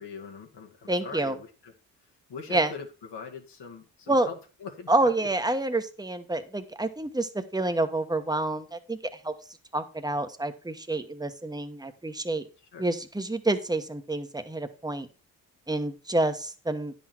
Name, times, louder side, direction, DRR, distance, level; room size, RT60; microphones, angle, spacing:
voice 1, 0.0-1.7 2.0-4.9 5.2-5.3 12.7-12.9, left 5 dB, 65° left, 3 dB, 2.0 m, -42 dB
voice 2, 0.9-1.4 2.5-2.7 4.1-4.3 4.9-9.3 9.7-12.4 12.8-15.1 15.7-16.9, right 2 dB, 10° right, 8 dB, 1.2 m, -28 dB
10.0 x 6.3 x 4.5 m, 0.34 s
supercardioid pair, 55°, 45 cm